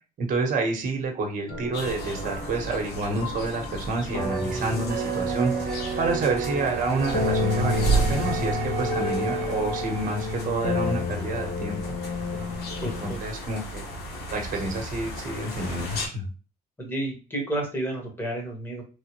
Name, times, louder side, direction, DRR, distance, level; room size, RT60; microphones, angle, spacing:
voice 1, 0.2-12.0 12.8-13.9 14.3-16.2, right 3 dB, 50° right, 3 dB, 1.1 m, -29 dB
sound 1, 1.5-13.2, left 2 dB, 45° left, 1.1 m, -31 dB
sound 2, 1.7-16.1, right 2 dB, 80° left, 1.0 m, -34 dB
sound 3, 4.9-10.4, right 7 dB, 70° right, 0.5 m, -33 dB
voice 2, 12.8-13.2 16.8-18.8, right 1 dB, 15° left, 0 dB, 1.4 m, -31 dB
3.3 x 2.4 x 3.0 m, 0.34 s
cardioid pair, 110°, 17 cm